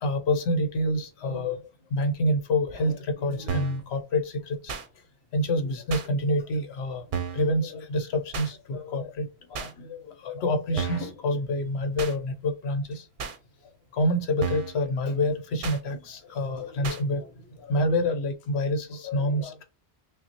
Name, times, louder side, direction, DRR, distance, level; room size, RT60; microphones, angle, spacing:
voice 1, 0.0-1.6 1.9-4.7 5.3-7.0 7.3-13.0 13.9-17.4 17.7-19.6, left 1 dB, 70° left, 1.0 m, -27 dB
sound 1, 3.5-3.8 4.7-4.9 5.9-6.1 7.1-7.5 8.3-8.5 9.5-9.7 10.8-11.1 12.0-12.1 13.2-13.4 14.4-14.8 15.6-15.8 16.8-17.0, right 6 dB, 55° right, 0.7 m, -32 dB
5.5 x 2.1 x 2.8 m
omnidirectional pair, 1.1 m